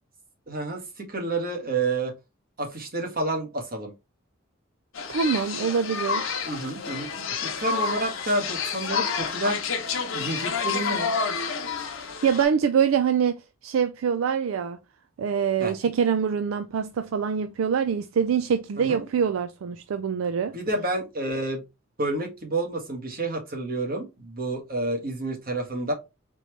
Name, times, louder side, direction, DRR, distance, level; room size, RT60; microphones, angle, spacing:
voice 1, 0.5-2.1 2.6-3.9 6.4-9.6 10.1-11.1 15.6-15.7 18.8-19.1 20.5-21.6 22.0-25.9, right 2 dB, 45° right, 1.5 m, -29 dB
sound 1, 4.9-12.4, left 5 dB, 70° left, 0.9 m, -29 dB
voice 2, 5.1-6.4 11.9-14.8 15.2-20.5, right 7 dB, 75° right, 0.4 m, -25 dB
4.2 x 3.0 x 3.2 m
head